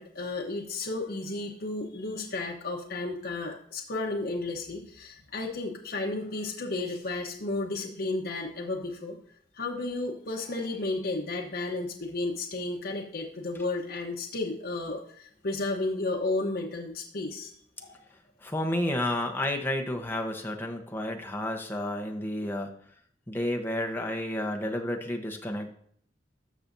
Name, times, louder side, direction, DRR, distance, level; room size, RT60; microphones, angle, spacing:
voice 1, 0.0-9.2 9.5-17.5 17.8-18.0, left 2 dB, 60° left, -1 dB, 1.1 m, -33 dB
voice 2, 18.4-22.7 23.3-25.7, left 1 dB, 15° left, 2 dB, 1.0 m, -31 dB
13.5 x 5.9 x 2.7 m, 0.62 s
head